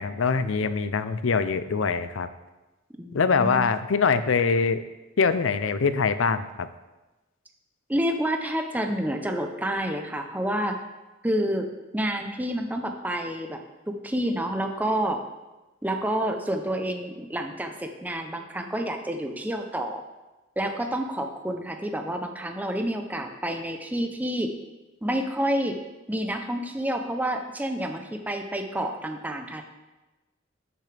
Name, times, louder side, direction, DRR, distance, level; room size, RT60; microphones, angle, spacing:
voice 1, 0.0-2.3 3.1-4.8 5.2-6.7, left 5 dB, 80° left, 12 dB, 0.5 m, -23 dB
voice 2, 3.0-3.7 7.9-10.8 11.2-11.7 11.9-13.6 13.9-15.2 15.8-20.0 20.6-24.5 25.0-25.8 26.1-29.6, right 1 dB, 10° right, 5 dB, 0.6 m, -29 dB
11.5 x 6.9 x 3.4 m, 1.1 s
head